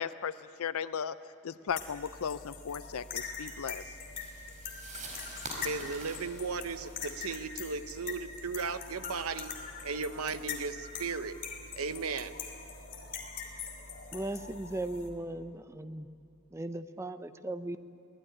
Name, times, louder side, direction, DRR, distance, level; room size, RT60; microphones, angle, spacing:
voice 1, 0.0-4.0, left 7 dB, 65° left, 14 dB, 0.5 m, -36 dB
sound 1, 1.7-15.1, left 5 dB, 40° left, 3.2 m, -43 dB
sound 2, 3.6-8.5, right 2 dB, 35° right, 5.0 m, -47 dB
voice 2, 5.6-9.5 9.8-11.4 11.8-12.3, right 4 dB, 70° right, 11 dB, 1.0 m, -36 dB
voice 3, 14.1-16.1 16.5-17.8, right 1 dB, 10° right, 11 dB, 0.7 m, -37 dB
23.5 x 17.5 x 9.9 m, 2.4 s
head